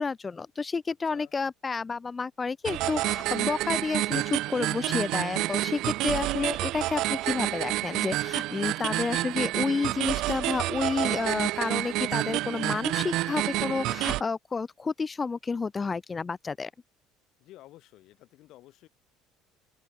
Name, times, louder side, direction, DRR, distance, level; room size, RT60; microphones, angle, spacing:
voice 1, 0.0-16.7, left 4 dB, 25° left, 0.9 m, -30 dB
sound 1, 2.6-14.2, right 17 dB, 65° right, 0.8 m, -29 dB
voice 2, 17.4-18.9, left 16 dB, 65° left, 3.7 m, -52 dB
open air
supercardioid pair, 110°, 0 cm